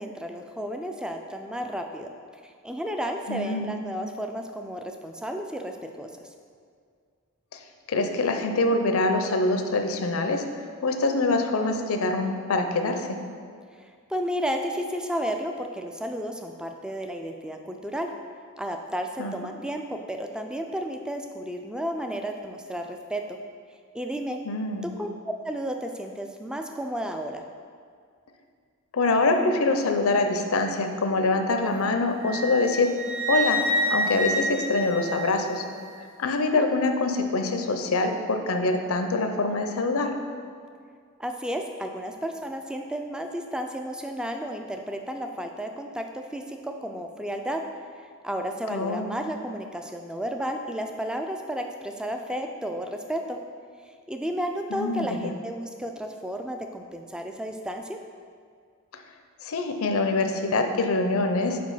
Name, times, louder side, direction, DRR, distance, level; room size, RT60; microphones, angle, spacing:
voice 1, 0.0-2.1 2.4-6.1 13.8-18.1 18.6-23.4 23.9-24.4 24.8-27.4 41.2-47.6 48.2-53.4 54.1-58.0, equal, 5° right, 4 dB, 0.3 m, -32 dB
voice 2, 3.3-3.7 7.5-7.6 7.9-10.4 10.8-13.2 19.2-19.3 24.5-24.9 28.9-32.9 33.3-33.6 33.9-35.6 36.2-40.1 48.7-49.1 54.7-55.3 59.4-61.6, left 3 dB, 70° left, 5 dB, 0.6 m, -24 dB
Wind instrument woodwind instrument, 32.2-35.7, equal, 60° right, 1.1 m, -28 dB
5.1 x 4.6 x 5.5 m, 2.1 s
head